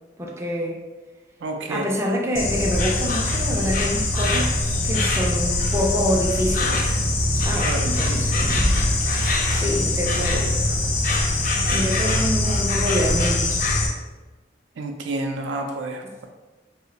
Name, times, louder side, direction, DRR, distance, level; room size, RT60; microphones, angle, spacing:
voice 1, 0.2-0.8 1.7-6.9 7.3-8.7 9.5-10.5 11.7-13.6, equal, 15° right, -1 dB, 0.4 m, -26 dB
voice 2, 1.4-1.9 7.6-7.9 14.8-16.3, right 2 dB, 80° right, 3 dB, 0.4 m, -29 dB
Insect, 2.3-13.9, left 2 dB, 50° left, 0.5 m, -22 dB
2.8 x 2.1 x 3.8 m, 1.2 s
head